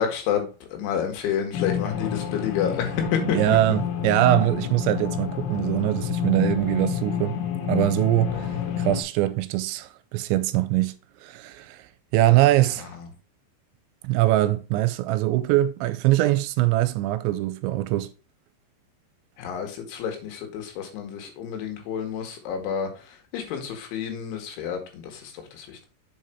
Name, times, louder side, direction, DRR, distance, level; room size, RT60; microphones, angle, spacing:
voice 1, 0.0-3.6 19.4-22.9 23.3-25.9, left 8 dB, 85° left, 4.0 m, -29 dB
sound 1, 1.5-9.0, left 9 dB, 70° left, 3.1 m, -29 dB
voice 2, 3.2-7.4 7.7-10.9 11.2-11.8 12.1-12.9 14.0-18.1, right 15 dB, 85° right, 2.9 m, -22 dB
7.4 x 4.9 x 4.4 m
omnidirectional pair, 5.3 m